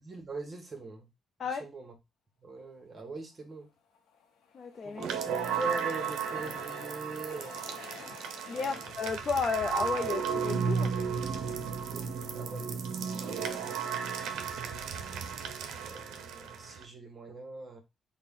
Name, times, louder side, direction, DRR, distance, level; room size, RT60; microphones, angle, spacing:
voice 1, 0.0-1.1 1.4-1.9 2.4-3.7 4.8-7.6 8.5-8.9 11.9-12.8 13.2-14.9 15.4-15.5 15.8-17.8, right 3 dB, 35° right, 0.9 m, -43 dB
Train, 3.6-10.9 11.4-11.5 11.7-11.8, left 5 dB, 90° left, 0.7 m, -51 dB
voice 2, 4.5-5.0 8.5-10.9 13.5-13.6, left 5 dB, 50° left, 0.5 m, -33 dB
sound 1, 5.0-16.8, right 6 dB, 85° right, 0.5 m, -34 dB
4.1 x 2.1 x 3.6 m
cardioid pair, 90°, 0 cm